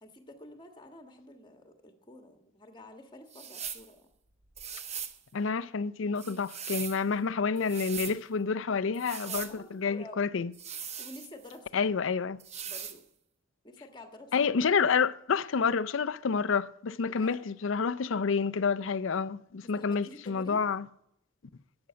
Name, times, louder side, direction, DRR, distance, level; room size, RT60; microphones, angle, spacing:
voice 1, 0.0-4.1 7.1-7.3 9.2-10.3 11.0-11.9 12.6-13.0 13.6-14.5 17.1-17.4 19.6-20.7, left 1 dB, 20° left, 1.5 m, -49 dB
sound 1, 3.3-3.9 4.6-5.2 6.2-7.0 7.6-8.2 8.9-9.5 10.5-11.6 12.4-13.0, right 8 dB, 35° right, 0.8 m, -40 dB
voice 2, 5.3-10.5 11.7-12.4 14.3-20.8, left 5 dB, 65° left, 0.5 m, -29 dB
12.5 x 8.9 x 6.1 m
head